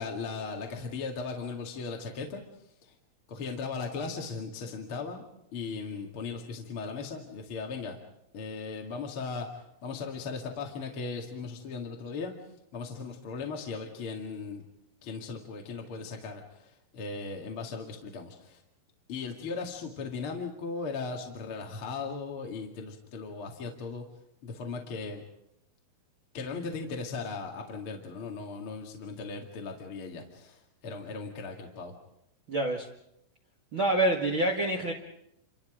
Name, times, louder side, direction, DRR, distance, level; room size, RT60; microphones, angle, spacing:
voice 1, 0.0-2.4 2.8-2.9 3.3-5.2 5.5-8.0 8.3-12.3 12.7-14.6 15.0-18.6 19.1-24.0 24.4-25.3 26.3-31.9, left 4 dB, 45° left, 2 dB, 1.9 m, -37 dB
voice 2, 32.5-32.9 33.7-34.9, right 1 dB, 80° right, 0 dB, 1.1 m, -26 dB
29.5 x 26.0 x 5.1 m, 0.78 s
omnidirectional pair, 5.8 m